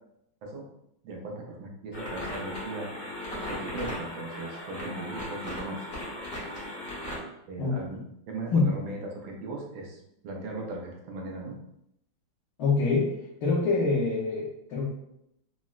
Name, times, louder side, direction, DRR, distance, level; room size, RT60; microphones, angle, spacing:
voice 1, 1.0-2.9 3.3-5.8 7.5-8.0 8.3-11.6, right 2 dB, 80° right, 0 dB, 1.4 m, -38 dB
sound 1, 1.9-7.2, left 1 dB, 40° left, 0.9 m, -37 dB
voice 2, 12.6-13.1 13.4-14.9, left 3 dB, 70° left, -7 dB, 1.1 m, -25 dB
4.0 x 2.0 x 2.3 m, 0.79 s
omnidirectional pair, 2.1 m